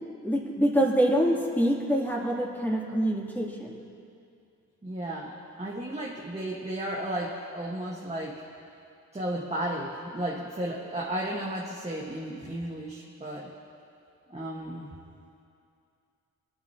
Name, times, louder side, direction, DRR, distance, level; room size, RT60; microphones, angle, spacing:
voice 1, 0.2-3.8, equal, 5° left, -3 dB, 3.0 m, -25 dB
voice 2, 4.8-8.4 9.1-13.5 14.3-15.0, right 1 dB, 20° right, -4 dB, 1.6 m, -34 dB
23.5 x 9.0 x 3.0 m, 2.5 s
supercardioid pair, 55°, 33 cm